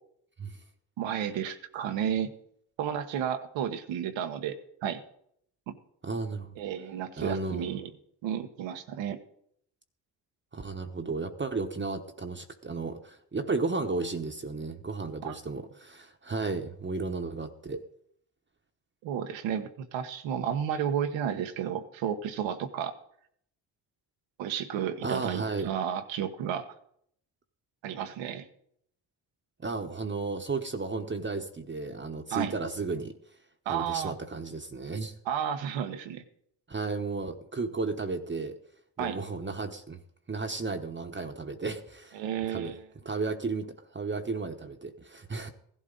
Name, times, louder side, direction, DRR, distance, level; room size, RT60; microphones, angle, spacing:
voice 1, 1.0-2.3 2.8-5.0 5.7-5.8 6.6-7.9 8.2-9.2 15.2-15.4 19.0-22.9 24.4-26.7 27.8-28.5 32.3-32.5 33.6-34.1 35.2-36.2 39.0-39.2 42.1-42.8, right 9 dB, 90° right, 9 dB, 1.3 m, -32 dB
voice 2, 6.0-6.6 7.2-7.7 10.5-17.8 25.0-25.7 29.6-33.2 33.7-35.1 36.7-38.6 39.0-40.0 40.3-42.2 42.5-42.7 43.0-45.5, right 3 dB, 25° right, 5 dB, 1.1 m, -34 dB
16.0 x 11.5 x 3.9 m, 0.68 s
supercardioid pair, 70°, 44 cm